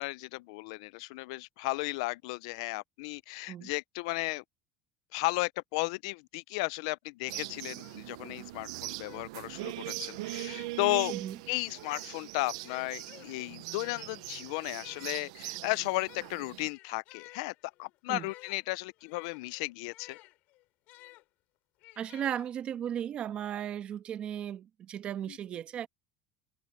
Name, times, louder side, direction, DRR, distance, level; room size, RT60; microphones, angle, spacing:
voice 1, 0.0-4.4 5.1-11.1 11.5-20.2 25.3-25.4, left 24 dB, 80° left, 0.5 m, -34 dB
sound 1, 7.3-16.7, right 19 dB, 90° right, 0.6 m, -41 dB
sound 2, 7.7-10.9 11.6-21.2 21.8-22.9, left 20 dB, 60° left, 4.8 m, -55 dB
voice 2, 22.0-25.9, right 10 dB, 40° right, 1.4 m, -36 dB
cardioid pair, 140°, 3 cm